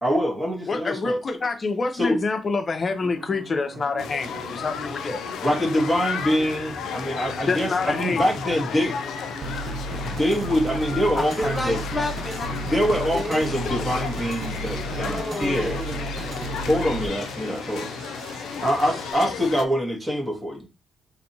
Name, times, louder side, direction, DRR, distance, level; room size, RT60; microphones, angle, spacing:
voice 1, 0.0-1.2 2.0-2.2 5.4-8.9 10.0-11.8 12.6-15.8 16.7-17.9 18.6-20.7, equal, 15° right, 1.3 m, -24 dB
voice 2, 0.7-5.3 7.5-8.3 13.6-13.7, left 4 dB, 40° left, 0.6 m, -27 dB
sound 1, 3.0-19.1, right 4 dB, 85° right, 0.8 m, -43 dB
sound 2, 4.0-19.7, left 7 dB, 80° left, 0.3 m, -33 dB
sound 3, 9.4-17.1, right 2 dB, 45° right, 0.5 m, -33 dB
voice 3, 11.2-12.5 13.1-13.7 15.0-16.5, left 1 dB, 10° left, 1.2 m, -31 dB
4.1 x 2.6 x 2.7 m
cardioid pair, 80°, 0 cm